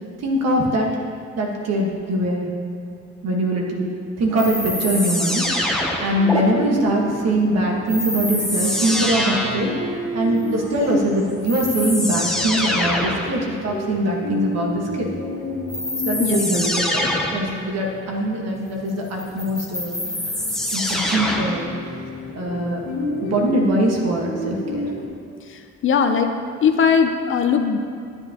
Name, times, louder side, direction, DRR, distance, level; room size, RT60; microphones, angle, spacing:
voice 1, 0.2-0.9 1.4-2.5 3.2-3.9 4.2-5.5 6.0-9.7 10.1-15.1 16.0-20.0 20.7-21.7 22.3-22.8 23.2-24.8, right 1 dB, 60° right, -1 dB, 1.4 m, -22 dB
sound 1, 4.4-6.4 7.9-9.7 11.0-11.1 11.4-13.3 15.7-17.5 19.2-21.6, left 1 dB, ahead, 0.7 m, -24 dB
sound 2, 6.2-25.1, left 1 dB, 75° left, 1.8 m, -32 dB
voice 2, 16.2-16.7 25.5-26.3 26.6-27.8, left 6 dB, 45° left, 7 dB, 0.5 m, -19 dB
10.0 x 9.6 x 2.9 m, 2.5 s
cardioid pair, 175°, 29 cm